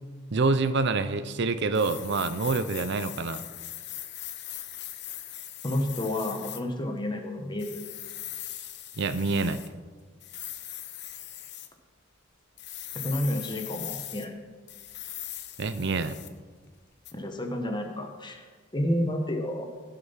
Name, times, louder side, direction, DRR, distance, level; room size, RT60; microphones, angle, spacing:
voice 1, 0.3-3.4 9.0-9.6 15.6-16.2, right 3 dB, 60° right, 12 dB, 0.6 m, -26 dB
sound 1, 1.7-6.6 7.6-9.7 10.2-11.7 12.6-14.2 14.7-16.4 17.0-17.1, left 12 dB, 55° left, 0.9 m, -40 dB
voice 2, 5.6-7.8 12.9-14.4 17.1-19.7, left 1 dB, 20° left, 4 dB, 1.3 m, -30 dB
15.5 x 6.8 x 5.7 m, 1.5 s
head